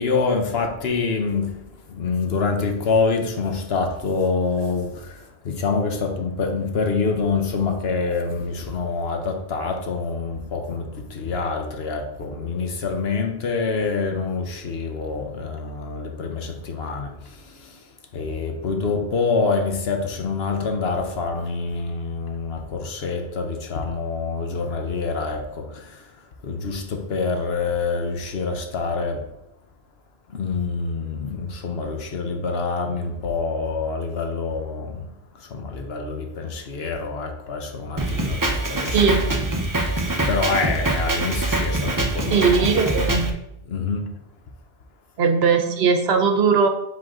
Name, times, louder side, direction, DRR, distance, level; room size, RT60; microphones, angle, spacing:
voice 1, 0.0-29.3 30.3-39.0 40.0-42.5 43.7-44.1, left 4 dB, 70° left, 1.2 m, -26 dB
Drum kit, 38.0-43.3, right 2 dB, 20° right, 0.7 m, -24 dB
voice 2, 38.9-39.3 42.3-43.3 45.2-46.7, right 5 dB, 70° right, 1.0 m, -19 dB
7.7 x 4.0 x 3.7 m
omnidirectional pair, 1.1 m